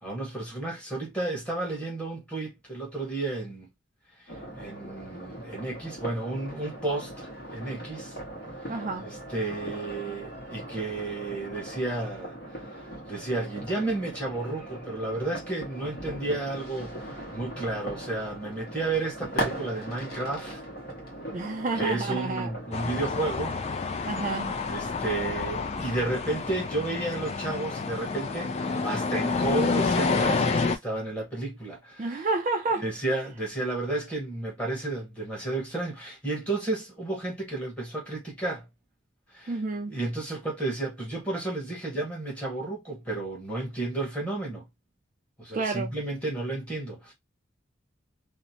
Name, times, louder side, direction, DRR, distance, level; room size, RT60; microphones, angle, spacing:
voice 1, 0.0-3.7 4.2-8.2 9.0-20.6 21.7-23.6 24.7-32.3 32.8-38.7 39.3-39.5 39.9-44.6 45.4-47.1, right 2 dB, 5° left, 1.1 m, -32 dB
sound 1, 4.3-23.3, right 1 dB, 50° left, 1.1 m, -39 dB
voice 2, 8.7-9.1 21.3-22.5 24.1-24.6 32.0-32.9 39.5-40.0 45.5-46.0, right 3 dB, 40° right, 0.4 m, -30 dB
sound 2, 22.7-30.8, left 4 dB, 30° left, 0.3 m, -29 dB
2.8 x 2.1 x 2.7 m
head